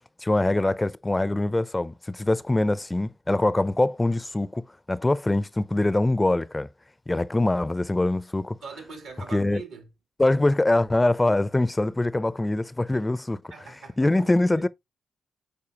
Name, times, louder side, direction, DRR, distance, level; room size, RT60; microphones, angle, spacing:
voice 1, 0.2-6.7 7.1-8.6 9.3-9.6 10.2-13.4 14.0-14.7, left 2 dB, 20° left, 0.4 m, -23 dB
voice 2, 8.6-9.9 12.9-13.0 13.5-14.7, right 4 dB, 90° right, 2.5 m, -42 dB
8.7 x 4.2 x 2.8 m
supercardioid pair, 60°, 0 cm